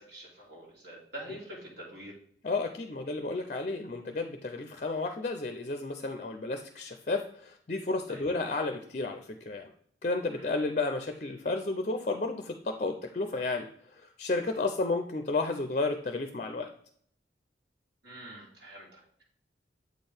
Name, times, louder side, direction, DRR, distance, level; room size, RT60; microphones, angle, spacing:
voice 1, 0.0-2.1 8.1-8.2 10.3-10.5 18.0-19.2, right 1 dB, 70° right, -4 dB, 2.3 m, -46 dB
voice 2, 2.4-9.7 10.0-16.7, left 3 dB, 40° left, 6 dB, 0.4 m, -32 dB
8.0 x 4.4 x 3.4 m, 0.63 s
head